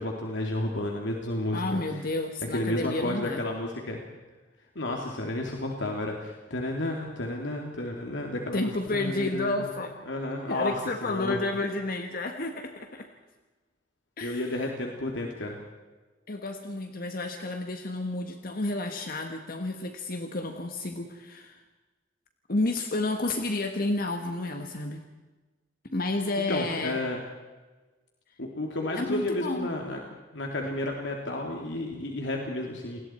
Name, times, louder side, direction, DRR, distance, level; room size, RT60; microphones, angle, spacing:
voice 1, 0.0-1.8 2.5-4.0 4.7-9.7 10.1-10.7 11.0-11.4 14.2-15.6 26.5-27.2 28.4-30.0 30.3-33.0, left 1 dB, 85° left, 1 dB, 2.7 m, -32 dB
voice 2, 1.5-3.4 8.5-9.9 10.5-13.1 14.2-14.5 16.3-21.6 22.5-25.0 25.9-27.0 28.9-29.7, left 2 dB, 55° left, 5 dB, 1.5 m, -31 dB
29.0 x 20.5 x 4.5 m, 1.2 s
head